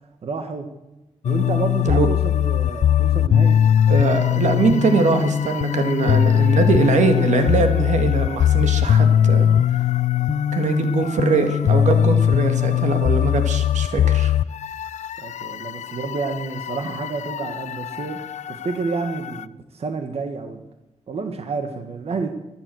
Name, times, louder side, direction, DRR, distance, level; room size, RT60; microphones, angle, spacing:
voice 1, 0.2-0.7 1.2-3.6 15.2-18.2 18.5-20.6 21.1-22.3, right 4 dB, 60° right, 6 dB, 1.4 m, -29 dB
sound 1, 1.2-19.4, left 10 dB, 80° left, 0.5 m, -20 dB
voice 2, 3.9-9.5 10.5-14.3, right 4 dB, 85° right, 6 dB, 1.9 m, -21 dB
15.0 x 11.0 x 7.8 m, 0.97 s
wide cardioid pair, 125°, 12 cm